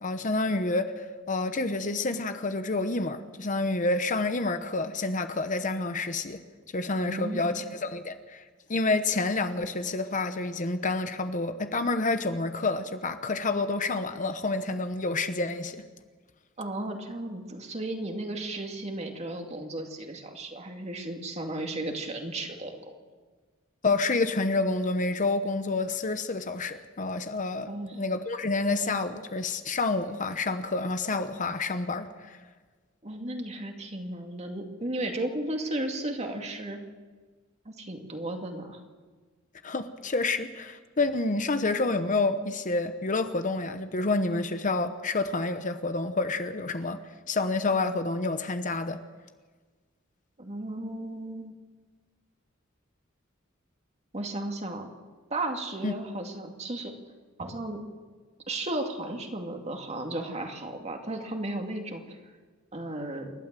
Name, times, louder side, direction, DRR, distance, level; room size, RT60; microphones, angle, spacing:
voice 1, 0.0-6.4 6.7-8.4 8.7-15.8 23.8-32.4 39.6-47.0 47.3-49.0 55.8-55.9, left 3 dB, 40° left, 9 dB, 1.0 m, -28 dB
voice 2, 7.0-7.6 16.6-22.8 27.7-28.0 33.0-36.8 37.7-38.8 50.4-51.5 54.1-54.9 55.3-56.9 57.4-57.8 58.5-62.2 62.7-63.3, right 1 dB, 35° right, 3 dB, 2.4 m, -34 dB
28.5 x 12.5 x 7.6 m, 1.4 s
head